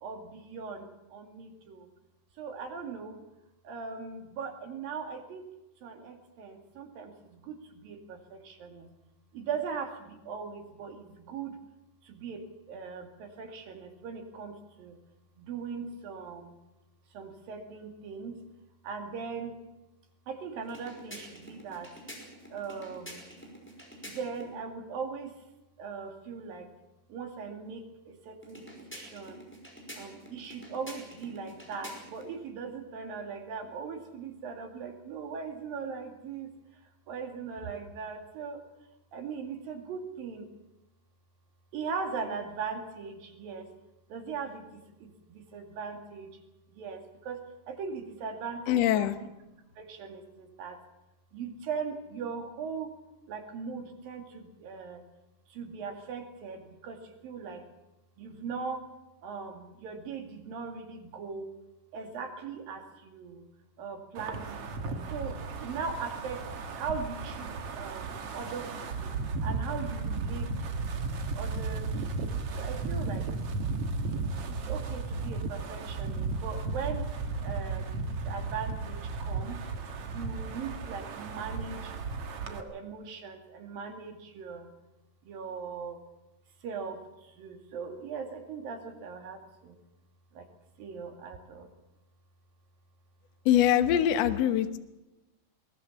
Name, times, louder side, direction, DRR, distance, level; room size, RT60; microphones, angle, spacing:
voice 1, 0.0-1.9 2.4-3.2 3.6-5.5 5.8-8.9 9.3-11.6 12.0-15.0 15.4-16.5 17.1-18.4 18.8-19.6 20.3-21.9 22.5-23.3 24.1-25.3 25.8-26.7 27.1-29.4 30.0-36.5 37.1-38.6 39.1-40.5 41.7-43.7 44.1-46.4 46.7-49.1 49.8-50.8 51.3-52.9 53.3-55.0 55.5-57.6 58.2-58.8 59.2-61.5 61.9-63.5 63.8-65.4 65.6-66.5 66.8-69.1 69.4-70.8 71.3-73.2 74.4-77.1 77.4-79.6 80.1-81.9 82.4-84.7 85.2-86.0 86.6-89.8 90.3-90.5 90.8-91.7, right 5 dB, 80° right, 4 dB, 4.2 m, -39 dB
sound 1, 20.6-24.5 28.4-32.3, equal, 5° left, 5.2 m, -47 dB
voice 2, 48.7-49.2 93.5-94.8, left 11 dB, 60° left, 9 dB, 1.9 m, -23 dB
Wind, 64.1-82.6, right 4 dB, 50° right, 2.2 m, -35 dB
22.0 x 19.5 x 7.2 m, 0.98 s
omnidirectional pair, 4.0 m